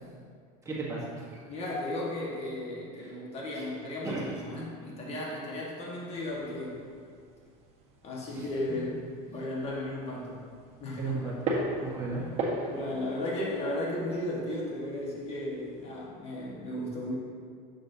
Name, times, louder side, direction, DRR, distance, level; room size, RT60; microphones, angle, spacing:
voice 1, 0.6-1.2 3.0-3.1 3.5-3.7 4.0-4.3 8.3-8.5 11.0-11.3 11.8-12.2 12.5-12.7, right 3 dB, 15° right, -6 dB, 1.1 m, -35 dB
voice 2, 1.5-6.8 8.0-9.0 9.2-10.5 10.8-11.1 12.7-17.2, left 1 dB, 30° left, -4 dB, 1.4 m, -35 dB
sound 1, 6.1-16.1, right 2 dB, 30° right, 1.6 m, -39 dB
8.2 x 6.6 x 2.7 m, 2.1 s
supercardioid pair, 145°, 20 cm